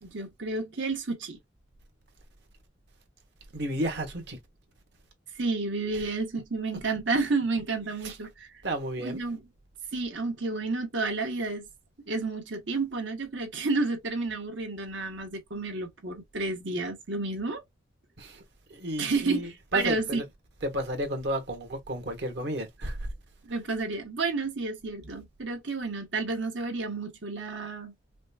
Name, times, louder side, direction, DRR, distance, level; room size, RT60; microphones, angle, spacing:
voice 1, 0.0-1.4 5.3-8.5 9.0-9.4 9.9-11.6 12.1-17.6 19.0-19.4 19.7-20.2 23.4-27.9, right 3 dB, 80° right, 1.4 m, -31 dB
voice 2, 3.5-4.4 5.9-6.1 8.0-8.2 8.6-9.2 18.2-18.4 18.7-20.2 20.6-23.1, right 1 dB, 60° right, 1.4 m, -32 dB
5.0 x 2.3 x 2.4 m
head